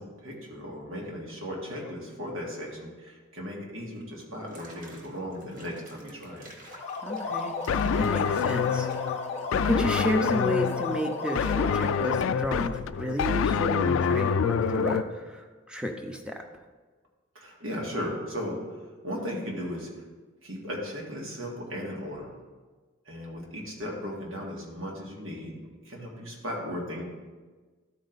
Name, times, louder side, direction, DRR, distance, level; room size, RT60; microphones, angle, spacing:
voice 1, 0.0-6.5 17.4-19.9 20.4-22.3 23.1-25.5 25.8-27.0, equal, 80° right, -2 dB, 2.0 m, -36 dB
Water / Bathtub (filling or washing), 4.3-9.8, right 1 dB, 40° right, 1.3 m, -52 dB
sound 1, 6.7-12.4, left 4 dB, 35° left, 0.8 m, -34 dB
voice 2, 7.0-8.9 9.5-16.4, equal, 5° right, 3 dB, 0.6 m, -32 dB
sound 2, 7.7-15.0, left 6 dB, 85° left, 0.3 m, -27 dB
13.0 x 4.6 x 4.0 m, 1.4 s
head